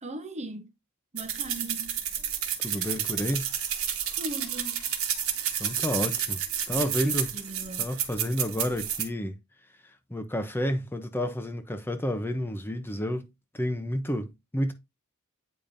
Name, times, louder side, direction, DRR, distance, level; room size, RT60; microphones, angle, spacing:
voice 1, 0.0-0.7 1.1-2.0 4.2-4.9 6.7-7.9, right 1 dB, 30° right, 1.0 m, -39 dB
sound 1, 1.2-9.0, right 9 dB, 70° right, 1.3 m, -30 dB
voice 2, 2.6-3.5 5.6-6.4 6.7-7.3 7.8-9.4 9.8-13.3 13.5-14.7, equal, 10° left, 0.7 m, -30 dB
8.7 x 5.1 x 2.6 m
head